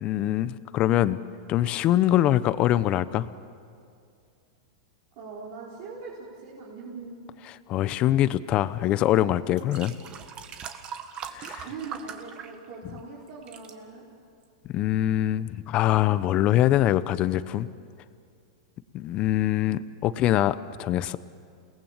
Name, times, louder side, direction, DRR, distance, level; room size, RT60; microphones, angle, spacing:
voice 1, 0.0-1.2 1.5-3.3 7.7-9.9 11.3-11.6 14.7-17.7 18.9-21.2, left 13 dB, 35° left, 16 dB, 0.8 m, -23 dB
voice 2, 5.2-7.2 11.6-14.0, right 4 dB, 55° right, -6 dB, 4.8 m, -41 dB
sound 1, 9.5-13.0 13.3-13.7 14.4-14.5, right 7 dB, 30° right, 1.7 m, -41 dB
28.5 x 19.0 x 7.5 m, 2.3 s
hypercardioid pair, 130°, 3 cm